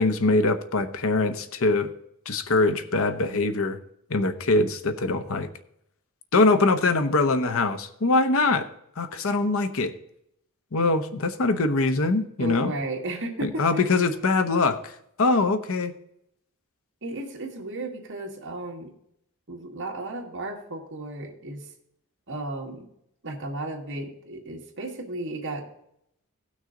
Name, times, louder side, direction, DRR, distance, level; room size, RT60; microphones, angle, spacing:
voice 1, 0.0-1.9 2.3-3.8 4.1-5.5 6.3-8.7 9.0-9.9 10.7-12.7 13.4-14.9 15.2-15.9, left 3 dB, 65° left, 10 dB, 0.9 m, -23 dB
voice 2, 12.4-13.8 17.0-18.9 19.5-21.7 22.3-22.9 23.2-25.7, right 2 dB, 55° right, 0 dB, 2.0 m, -34 dB
16.5 x 6.3 x 3.8 m, 0.75 s
head